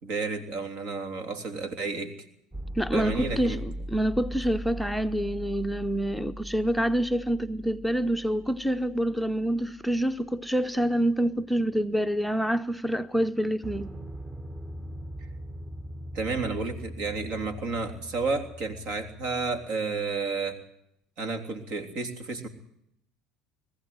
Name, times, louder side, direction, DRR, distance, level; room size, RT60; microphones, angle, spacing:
voice 1, 0.0-2.1 2.9-3.6 15.2-15.3 16.1-20.6 21.2-22.5, right 4 dB, 60° right, 3.5 m, -31 dB
sound 1, 2.5-10.3 13.6-19.7, equal, 20° right, 1.5 m, -40 dB
voice 2, 2.8-13.9, right 1 dB, ahead, 0.7 m, -27 dB
20.5 x 15.0 x 9.4 m
hypercardioid pair, 85°, 2 cm